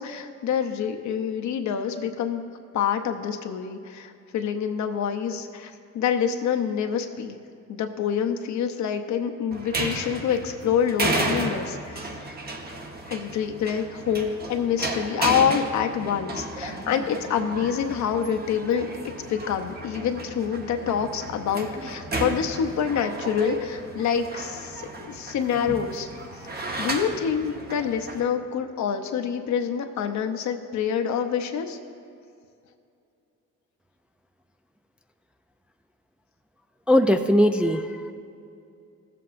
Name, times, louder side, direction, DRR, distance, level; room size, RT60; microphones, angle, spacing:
voice 1, 0.0-2.4 2.7-7.4 7.7-12.1 13.1-18.9 19.3-26.1 26.5-31.8, left 8 dB, 65° left, 5 dB, 0.8 m, -26 dB
sound 1, 9.5-28.2, right 2 dB, 30° right, 1.0 m, -33 dB
voice 2, 36.9-38.1, equal, 5° right, 6 dB, 0.3 m, -20 dB
15.0 x 7.6 x 2.5 m, 2.5 s
cardioid pair, 90°, 30 cm